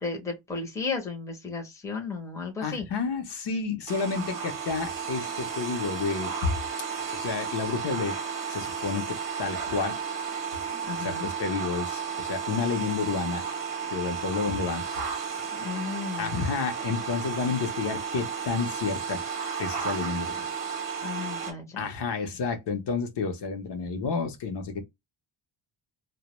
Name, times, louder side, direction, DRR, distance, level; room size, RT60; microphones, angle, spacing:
voice 1, 0.0-2.9 10.9-11.3 15.5-16.4 21.0-21.9, left 4 dB, 5° left, 0.5 m, -34 dB
voice 2, 2.6-6.6 7.1-8.2 8.5-10.0 11.0-13.5 13.9-14.8 16.2-19.2 19.6-20.5 21.8-24.8, left 5 dB, 60° left, 0.7 m, -30 dB
sound 1, 3.9-21.5, right 6 dB, 45° right, 0.7 m, -33 dB
2.1 x 2.1 x 2.8 m
wide cardioid pair, 160°, 46 cm